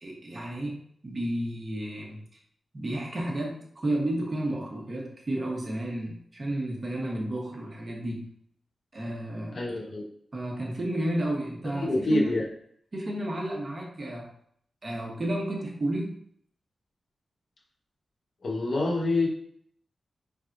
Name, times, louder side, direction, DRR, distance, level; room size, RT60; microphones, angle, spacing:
voice 1, 0.0-2.2 2.7-8.3 8.9-9.6 10.3-12.3 12.9-14.3 14.8-16.2, right 1 dB, 30° right, -1 dB, 1.0 m, -32 dB
voice 2, 9.5-10.0 11.7-12.5 18.4-19.3, left 2 dB, 55° left, -2 dB, 1.1 m, -26 dB
5.5 x 3.4 x 2.5 m, 0.64 s
wide cardioid pair, 175°, 0 cm